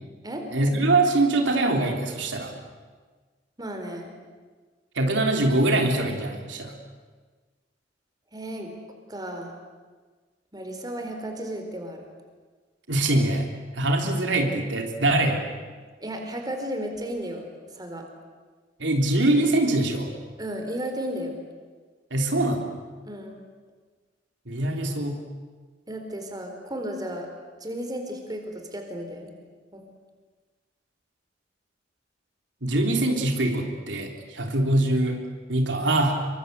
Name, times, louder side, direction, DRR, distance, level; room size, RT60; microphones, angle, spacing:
voice 1, 0.5-2.5 4.9-6.7 12.9-13.5 13.7-15.4 18.8-20.1 22.1-22.8 24.5-25.2 32.6-35.2 35.5-36.2, right 2 dB, 85° right, 3 dB, 3.4 m, -23 dB
voice 2, 3.6-4.1 8.3-8.7 9.1-9.5 10.5-12.0 16.0-17.5 17.7-18.0 20.4-21.4 23.1-23.4 25.9-27.3 27.6-29.3 29.7-29.8, right 1 dB, 20° right, 3 dB, 4.2 m, -34 dB
26.0 x 24.0 x 8.1 m, 1.4 s
head